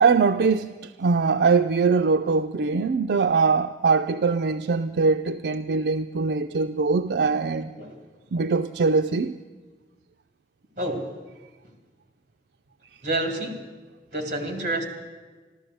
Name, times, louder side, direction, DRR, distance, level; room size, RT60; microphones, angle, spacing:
voice 1, 0.0-7.7 8.3-9.4, right 4 dB, 75° right, 7 dB, 0.4 m, -22 dB
voice 2, 10.8-11.1 13.0-13.6 14.1-14.9, right 2 dB, 45° right, 5 dB, 2.3 m, -28 dB
14.5 x 12.5 x 7.8 m, 1.4 s
head